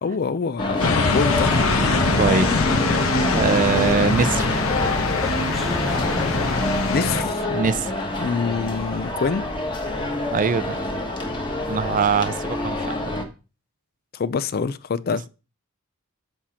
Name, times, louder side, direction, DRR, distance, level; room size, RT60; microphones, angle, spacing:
voice 1, 0.0-1.5 6.9-7.5 8.2-9.4 14.1-15.3, left 5 dB, 45° left, 0.4 m, -25 dB
sound 1, 0.6-13.2, left 1 dB, 20° left, 1.4 m, -26 dB
sound 2, 0.8-7.2, left 4 dB, 70° left, 1.1 m, -23 dB
sound 3, 1.1-7.3, equal, ahead, 0.9 m, -35 dB
voice 2, 2.2-2.5 3.3-4.6 7.5-8.0 10.3-10.8 11.7-13.1, right 5 dB, 40° right, 0.4 m, -22 dB
7.2 x 4.4 x 5.7 m
head